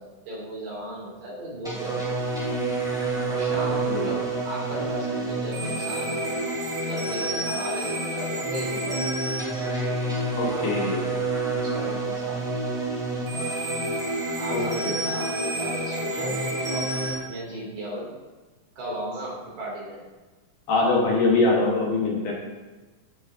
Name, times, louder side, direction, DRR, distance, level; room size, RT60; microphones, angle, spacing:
voice 1, 0.0-2.6 3.3-6.4 6.8-9.1 11.6-12.4 14.4-17.0 17.3-18.1 18.8-20.0, right 1 dB, 60° right, -5 dB, 3.8 m, -36 dB
sound 1, 1.6-17.1, right 2 dB, ahead, 1.3 m, -28 dB
voice 2, 10.3-11.1 14.5-14.9 20.7-22.3, left 3 dB, 65° left, -2 dB, 2.6 m, -23 dB
15.0 x 6.1 x 2.6 m, 1.2 s
omnidirectional pair, 4.2 m